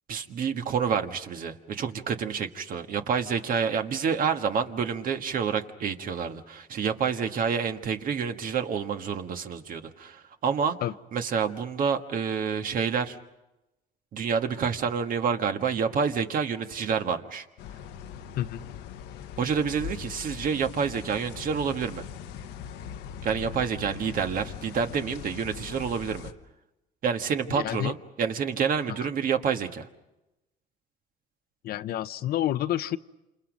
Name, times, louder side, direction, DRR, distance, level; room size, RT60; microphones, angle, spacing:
voice 1, 0.1-10.8 11.1-13.2 14.1-17.4 19.4-22.0 23.2-26.3 27.0-29.9, right 6 dB, 55° right, 7 dB, 1.6 m, -28 dB
sound 1, 17.6-26.3, left 9 dB, 85° left, 1.1 m, -41 dB
voice 2, 27.5-27.9 29.0-29.1 31.6-33.0, left 12 dB, 65° left, 13 dB, 0.8 m, -29 dB
28.5 x 27.5 x 5.2 m, 0.96 s
cardioid pair, 110°, 17 cm